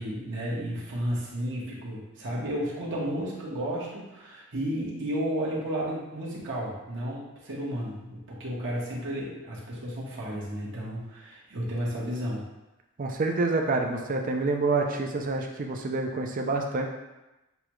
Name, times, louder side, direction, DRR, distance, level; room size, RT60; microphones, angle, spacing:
voice 1, 0.0-12.4, equal, 60° right, -5 dB, 1.3 m, -32 dB
voice 2, 13.0-16.9, right 3 dB, 40° right, 2 dB, 0.5 m, -27 dB
6.8 x 2.4 x 3.0 m, 1.0 s
head